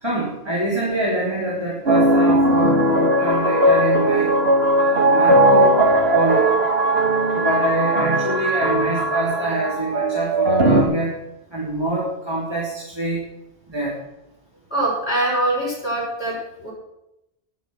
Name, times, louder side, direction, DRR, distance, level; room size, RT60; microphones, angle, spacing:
voice 1, 0.0-4.3 4.8-5.8 6.1-6.5 7.3-11.1 11.5-13.2 13.7-14.0, right 1 dB, 25° right, -6 dB, 3.1 m, -25 dB
sound 1, 1.9-10.8, right 1 dB, 70° right, 1.8 m, -18 dB
voice 2, 14.7-16.7, right 1 dB, 75° left, -5 dB, 6.8 m, -23 dB
18.5 x 7.0 x 6.2 m, 0.88 s
omnidirectional pair, 1.1 m